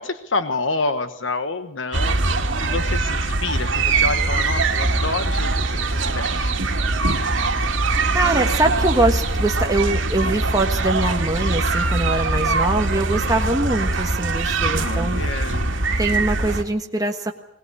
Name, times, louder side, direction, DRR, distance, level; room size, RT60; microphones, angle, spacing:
voice 1, 0.0-5.5 5.8-6.6 14.8-15.7, left 3 dB, 80° left, 9 dB, 1.2 m, -28 dB
sound 1, 1.9-16.6, right 3 dB, 85° right, 2.3 m, -22 dB
voice 2, 8.1-15.2 16.0-17.3, right 2 dB, 20° right, 3 dB, 1.5 m, -23 dB
21.5 x 19.0 x 8.5 m, 0.78 s
head